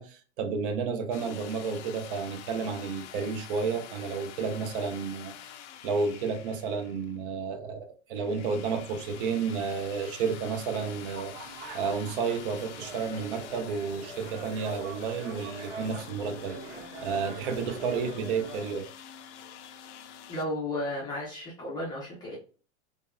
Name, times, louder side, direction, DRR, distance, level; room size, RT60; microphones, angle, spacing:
voice 1, 0.0-5.3 5.8-16.6 17.0-18.9, right 5 dB, 50° right, 0.5 m, -31 dB
sound 1, 1.1-7.3 8.2-20.4, left 9 dB, 90° left, 0.5 m, -47 dB
sound 2, 10.7-18.7, right 3 dB, 70° right, 0.8 m, -44 dB
voice 2, 20.3-22.4, left 1 dB, 10° left, 0.5 m, -33 dB
3.4 x 2.0 x 2.2 m
supercardioid pair, 170°, 34 cm